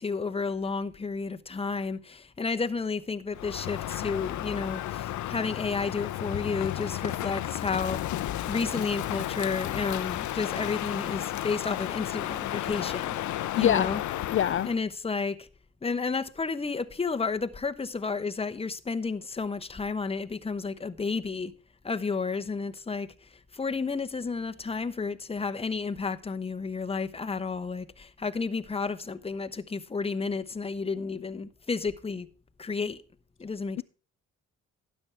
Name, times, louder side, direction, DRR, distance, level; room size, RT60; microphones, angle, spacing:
voice 1, 0.0-8.1 8.5-13.2 13.6-14.0 14.6-15.5 15.8-21.5 21.8-23.1 23.5-32.3 32.6-33.0 33.4-33.8, left 4 dB, 20° left, 1.0 m, -31 dB
Crow, 3.3-14.8, left 13 dB, 75° left, 0.7 m, -33 dB
voice 2, 13.6-13.9 14.3-14.7, left 10 dB, 45° left, 0.4 m, -23 dB
12.5 x 9.8 x 3.4 m
cardioid pair, 90°, 30 cm